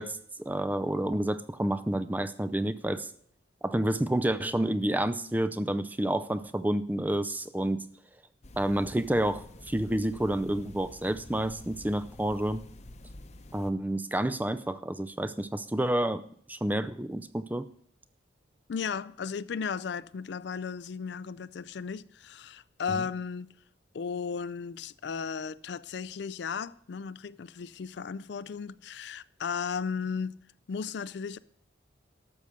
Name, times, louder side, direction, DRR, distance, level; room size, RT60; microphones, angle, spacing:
voice 1, 0.0-3.1 3.6-7.8 8.6-12.6 13.5-16.2 16.5-17.7 22.9-23.0, right 1 dB, 10° right, 0.4 m, -29 dB
sound 1, 8.4-13.7, left 1 dB, 35° left, 0.8 m, -48 dB
voice 2, 18.7-23.5 23.9-30.4 30.7-31.4, left 6 dB, 60° left, 0.4 m, -35 dB
12.5 x 7.0 x 6.3 m
head